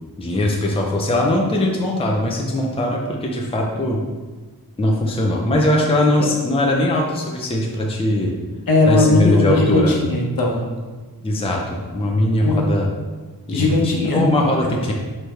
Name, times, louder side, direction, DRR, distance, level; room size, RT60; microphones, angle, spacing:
voice 1, 0.2-4.0 4.8-8.3 8.9-9.9 11.2-12.9 13.5-13.8 14.1-14.9, left 1 dB, 15° left, -1 dB, 0.5 m, -20 dB
voice 2, 8.7-10.6 12.4-12.7 13.5-14.2 14.6-14.7, left 2 dB, 60° left, -1 dB, 1.1 m, -18 dB
6.4 x 3.4 x 4.5 m, 1.3 s
wide cardioid pair, 175°, 39 cm